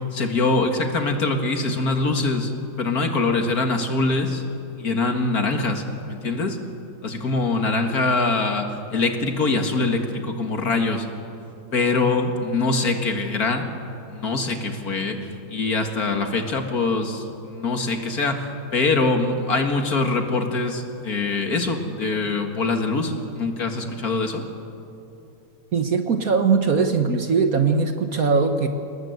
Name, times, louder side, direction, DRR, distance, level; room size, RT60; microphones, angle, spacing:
voice 1, 0.1-2.5 2.8-4.4 4.8-6.6 7.0-11.1 11.7-13.7 14.1-24.4, left 3 dB, 50° left, 5 dB, 2.2 m, -23 dB
voice 2, 25.7-28.7, right 5 dB, 50° right, 7 dB, 1.4 m, -20 dB
27.5 x 19.5 x 8.0 m, 2.7 s
omnidirectional pair, 2.1 m